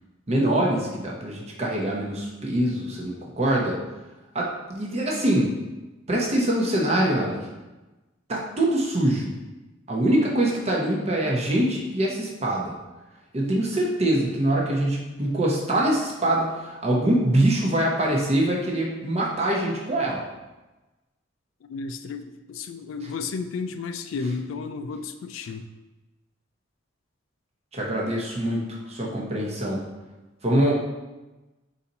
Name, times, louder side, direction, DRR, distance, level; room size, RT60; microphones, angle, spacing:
voice 1, 0.3-3.8 4.3-5.5 6.1-7.4 8.3-9.3 9.9-12.7 13.3-20.2 27.7-28.6 28.9-29.8 30.4-30.7, right 1 dB, 35° right, -2 dB, 0.8 m, -24 dB
voice 2, 21.6-25.7, left 4 dB, 85° left, 9 dB, 0.3 m, -33 dB
4.0 x 2.7 x 4.1 m, 1.1 s
head